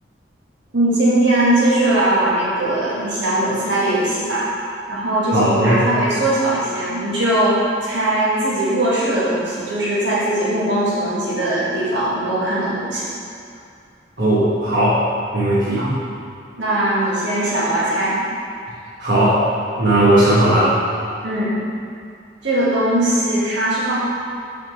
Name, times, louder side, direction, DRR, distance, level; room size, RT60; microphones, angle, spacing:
voice 1, 0.7-4.5 4.9-13.1 15.8-15.9 16.6-18.2 21.2-21.5 22.4-24.0, right 1 dB, 80° right, -9 dB, 1.8 m, -20 dB
voice 2, 5.3-5.8 14.2-15.1 15.3-15.9 19.0-20.8, right 1 dB, 65° right, -10 dB, 1.4 m, -17 dB
6.0 x 4.3 x 6.1 m, 2.4 s
head